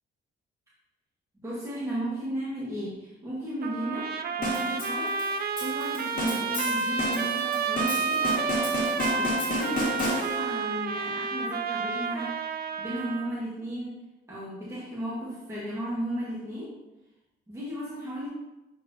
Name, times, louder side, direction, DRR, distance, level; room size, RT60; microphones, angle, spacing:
voice 1, 1.4-5.2 5.6-8.4 9.2-14.0 14.3-16.8 17.5-18.3, right 1 dB, 15° right, -9 dB, 1.8 m, -35 dB
Trumpet, 3.6-13.3, right 5 dB, 50° right, 0.5 m, -30 dB
sound 1, 4.4-10.6, left 1 dB, 45° left, 2.2 m, -32 dB
7.9 x 4.5 x 2.9 m, 0.99 s
cardioid pair, 90°, 20 cm